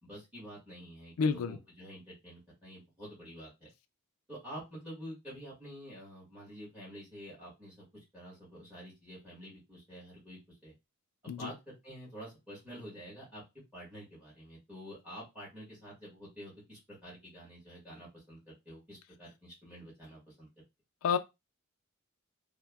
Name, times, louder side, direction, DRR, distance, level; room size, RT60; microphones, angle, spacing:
voice 1, 0.0-3.7 4.3-10.7 11.2-13.4 13.7-20.5, equal, 5° right, 1.3 m, -48 dB
voice 2, 1.2-1.6 11.3-11.5 21.0-21.2, left 5 dB, 90° left, 0.4 m, -29 dB
3.3 x 2.1 x 2.2 m
head